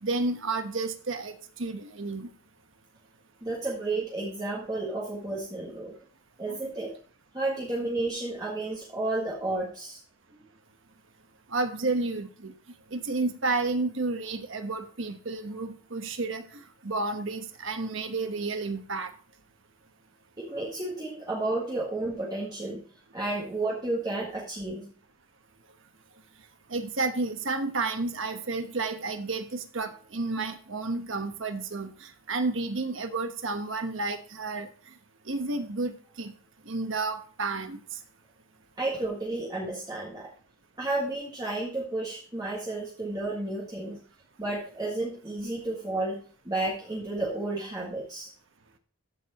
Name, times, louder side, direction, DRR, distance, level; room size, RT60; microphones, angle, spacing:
voice 1, 0.0-2.3 6.5-6.6 11.5-12.5 12.9-19.1 26.7-34.7 35.3-36.3 36.7-37.8, right 3 dB, 60° right, 7 dB, 1.1 m, -31 dB
voice 2, 3.4-6.0 6.4-7.0 7.3-10.0 20.4-22.8 23.1-24.9 38.8-40.3 40.8-44.0 44.4-48.3, right 2 dB, 20° right, -5 dB, 1.7 m, -32 dB
13.5 x 4.7 x 4.2 m, 0.42 s
head